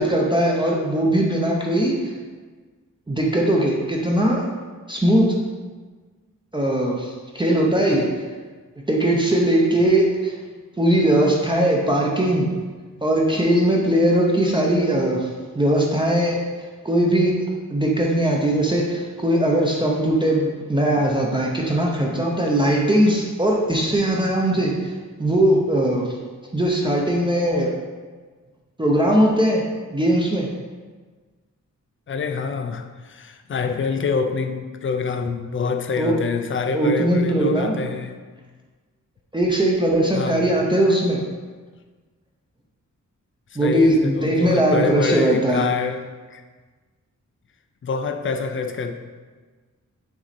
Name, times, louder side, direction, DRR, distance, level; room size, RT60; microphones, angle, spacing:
voice 1, 0.0-2.1 3.1-4.5 4.9-5.3 6.5-8.1 8.9-10.3 10.8-12.5 13.0-15.3 15.5-16.4 16.8-24.9 25.2-26.1 26.5-27.7 28.8-29.6 29.9-30.5 36.0-36.1 36.7-37.8 39.3-41.2 43.6-45.7, right 1 dB, 15° right, -2 dB, 0.6 m, -20 dB
voice 2, 32.1-38.2 40.1-40.6 43.6-46.4 47.8-48.9, left 5 dB, 40° left, 7 dB, 0.4 m, -26 dB
6.0 x 4.1 x 4.1 m, 1.4 s
wide cardioid pair, 160°, 32 cm